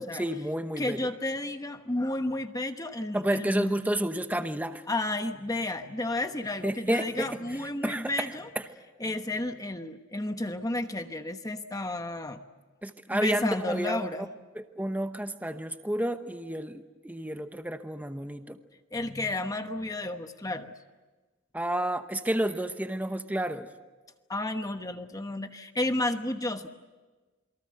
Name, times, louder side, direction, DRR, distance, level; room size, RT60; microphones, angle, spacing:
voice 1, 0.0-1.0 3.1-4.8 6.6-7.4 7.8-8.3 12.8-14.1 14.5-18.6 21.5-23.7, right 1 dB, 10° right, 8 dB, 1.0 m, -30 dB
voice 2, 0.8-3.7 4.9-8.5 9.0-12.4 13.1-14.3 18.9-20.7 24.3-26.7, left 2 dB, 15° left, 7 dB, 1.1 m, -32 dB
28.0 x 23.0 x 7.8 m, 1.2 s
head